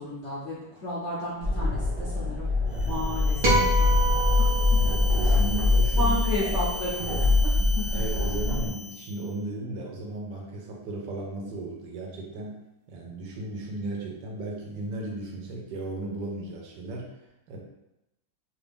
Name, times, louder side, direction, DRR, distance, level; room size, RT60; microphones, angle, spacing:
voice 1, 0.0-2.5 2.8-4.0 4.4-4.5 5.9-7.9, left 1 dB, 60° left, -8 dB, 0.7 m, -33 dB
sound 1, 1.4-8.7, left 3 dB, 25° right, 0.8 m, -24 dB
sound 2, 2.7-9.3, equal, 75° left, 1.2 m, -38 dB
sound 3, 3.4-5.9, right 2 dB, 55° right, 0.5 m, -28 dB
voice 2, 4.8-6.2 7.9-12.6 12.9-17.1 17.5-17.6, right 2 dB, 75° right, -1 dB, 1.3 m, -35 dB
3.3 x 2.5 x 3.4 m, 0.90 s
omnidirectional pair, 2.0 m